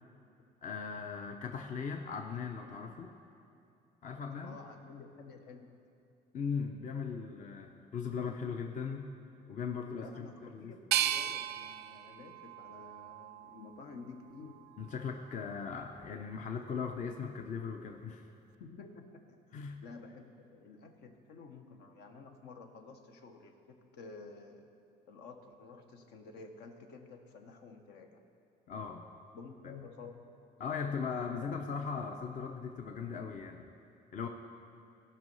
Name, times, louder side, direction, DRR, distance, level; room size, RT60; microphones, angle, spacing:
voice 1, 0.6-3.1 4.0-4.6 6.3-9.1 9.5-10.7 14.8-18.3 19.5-19.8 28.7-29.1 29.6-29.7 30.6-33.7 34.1-34.3, left 6 dB, 50° left, 4 dB, 0.7 m, -38 dB
voice 2, 4.4-5.8 9.9-14.6 18.6-19.4 19.8-24.7 25.1-28.3 29.3-30.3 31.4-31.6, left 4 dB, 80° left, 4 dB, 1.0 m, -51 dB
sound 1, 10.9-13.8 14.4-15.2, right 12 dB, 80° right, 0.4 m, -36 dB
16.5 x 5.6 x 5.4 m, 2.7 s
cardioid pair, 110°, 17 cm